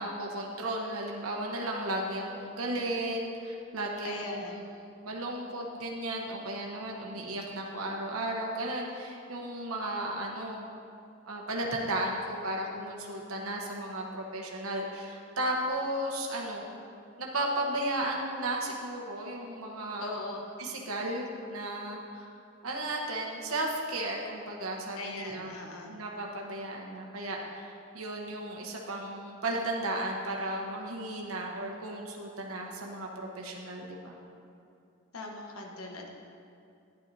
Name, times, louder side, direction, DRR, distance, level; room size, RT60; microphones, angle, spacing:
voice 1, 0.0-10.7 11.3-16.7 17.2-20.2 20.6-22.3 22.6-25.5 25.9-34.2, right 1 dB, 80° right, -1 dB, 1.0 m, -34 dB
voice 2, 4.0-4.6 20.0-20.5 25.0-26.0 35.1-36.1, left 2 dB, 85° left, 0 dB, 1.1 m, -40 dB
11.5 x 10.5 x 2.7 m, 2.5 s
head